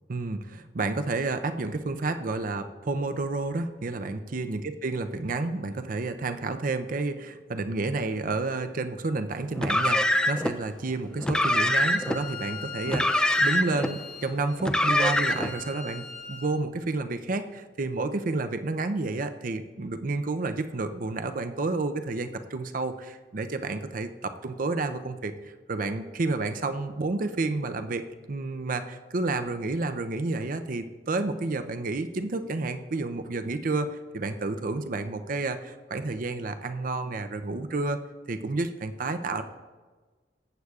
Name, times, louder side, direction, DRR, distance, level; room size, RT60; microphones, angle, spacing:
voice 1, 0.1-38.0 38.3-39.4, right 3 dB, 50° right, 9 dB, 0.5 m, -30 dB
Car, 9.6-10.5 11.2-12.2 12.9-13.9 14.6-15.5, left 1 dB, 5° left, 0.3 m, -24 dB
Bowed string instrument, 11.2-16.6, left 5 dB, 35° left, 1.4 m, -41 dB
14.5 x 8.1 x 2.4 m, 1.3 s
head